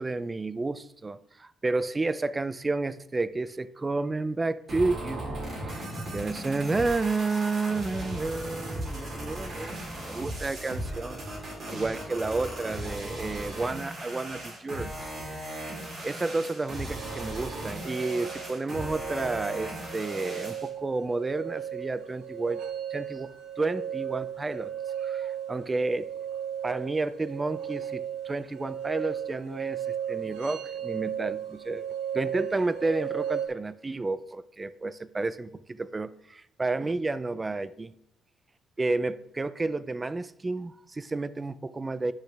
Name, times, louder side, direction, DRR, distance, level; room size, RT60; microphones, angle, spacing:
voice 1, 0.0-5.9 6.1-9.8 10.0-11.3 11.7-15.1 16.0-22.6 22.9-23.3 23.6-24.7 25.0-26.1 26.6-31.8 32.1-38.0 38.8-42.1, right 3 dB, 25° right, 0.4 m, -31 dB
sound 1, 4.7-20.7, right 1 dB, 55° right, 3.4 m, -37 dB
sound 2, 17.0-33.5, right 9 dB, 85° right, 1.2 m, -36 dB
10.5 x 6.1 x 3.4 m
cardioid pair, 90°, 0 cm